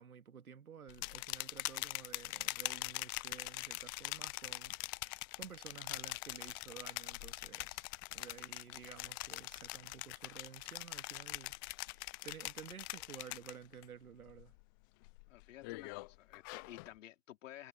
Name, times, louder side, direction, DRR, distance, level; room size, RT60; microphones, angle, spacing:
voice 1, 0.0-14.5, right 7 dB, 85° right, 2.2 m, -53 dB
sound 1, 0.9-13.8 14.2-14.6 15.0-16.9, left 26 dB, 20° left, 0.3 m, -43 dB
voice 2, 15.3-17.7, left 13 dB, 60° left, 4.4 m, -53 dB
hypercardioid pair, 110°, 42 cm